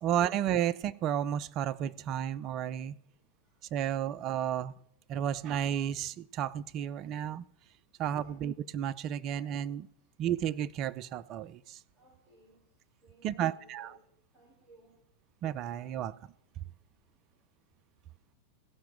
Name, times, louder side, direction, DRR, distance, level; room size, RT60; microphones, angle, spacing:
voice 1, 0.0-2.9 3.7-4.7 5.1-7.4 8.0-9.9 10.2-11.8 13.2-13.9 15.4-16.1, right 10 dB, 35° right, 15 dB, 0.4 m, -32 dB
voice 2, 3.1-3.6 8.1-8.4 10.0-10.1 11.9-12.6 13.0-14.0 14.3-14.9, right 1 dB, 20° right, -7 dB, 5.9 m, -61 dB
15.5 x 5.8 x 6.1 m, 0.75 s
figure-of-eight pair, 90°, 0 cm